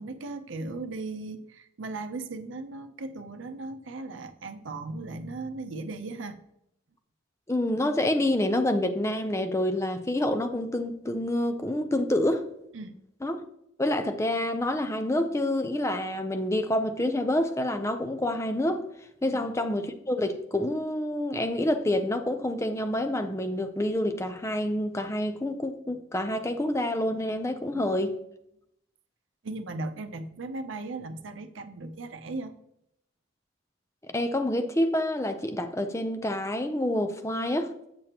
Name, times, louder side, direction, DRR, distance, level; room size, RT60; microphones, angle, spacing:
voice 1, 0.0-6.4 12.7-13.0 19.3-19.5 27.7-27.8 29.4-32.5, right 3 dB, 90° right, 0.6 m, -37 dB
voice 2, 7.5-12.4 13.2-13.4 13.8-18.8 19.2-28.2 34.1-37.7, left 1 dB, 15° left, 0.5 m, -27 dB
7.7 x 6.8 x 2.9 m
head